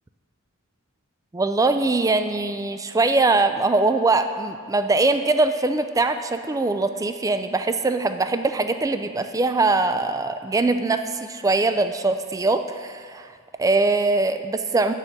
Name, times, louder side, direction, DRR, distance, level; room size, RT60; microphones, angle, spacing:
voice 1, 1.3-13.3 13.6-14.9, right 3 dB, 15° right, 9 dB, 0.3 m, -22 dB
9.1 x 5.3 x 7.1 m, 2.1 s
head